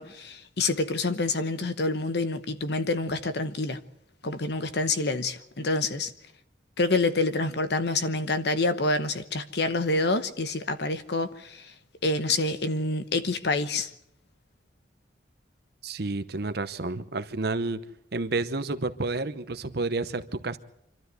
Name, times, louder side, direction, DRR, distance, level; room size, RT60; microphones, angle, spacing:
voice 1, 0.0-3.8 4.2-6.1 6.8-11.7 12.0-13.9, left 2 dB, 60° left, 1.0 m, -27 dB
voice 2, 15.8-17.8 18.1-20.6, right 3 dB, 55° right, 0.9 m, -30 dB
26.0 x 13.0 x 8.1 m
head